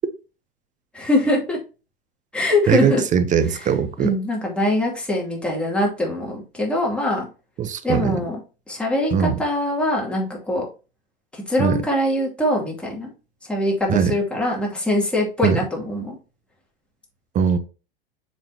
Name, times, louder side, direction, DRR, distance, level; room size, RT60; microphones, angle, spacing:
voice 1, 0.9-1.6 2.3-3.0 3.5-3.7 4.0-7.3 7.8-8.4 8.7-10.6 11.3-13.1 13.4-16.2, left 1 dB, 5° left, 2.6 m, -23 dB
voice 2, 2.7-4.1 7.6-8.2 9.1-9.4 11.6-11.8 13.9-14.1 15.4-15.6 17.3-17.6, right 7 dB, 25° right, 0.8 m, -20 dB
7.1 x 5.3 x 2.8 m
figure-of-eight pair, 90°, 32 cm